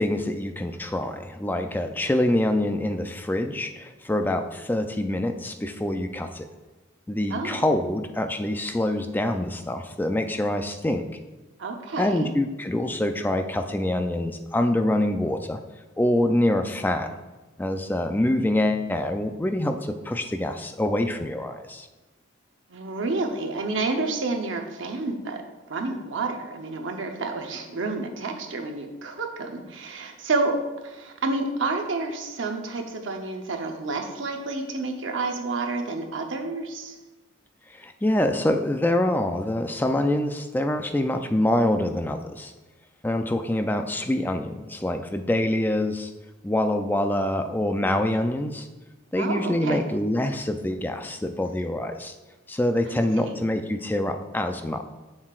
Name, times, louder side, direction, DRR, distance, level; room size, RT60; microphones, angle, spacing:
voice 1, 0.0-6.5 7.1-11.1 12.0-15.6 16.0-17.1 17.6-21.9 37.7-42.5 43.0-46.1 46.4-48.7 49.1-52.1 52.5-54.8, left 1 dB, 10° left, 7 dB, 0.3 m, -25 dB
voice 2, 7.3-7.6 11.6-12.3 22.7-25.4 25.7-30.6 30.8-37.0 49.2-49.8 52.9-53.4, right 3 dB, 65° right, 4 dB, 0.8 m, -29 dB
7.1 x 6.6 x 2.4 m, 1.2 s
head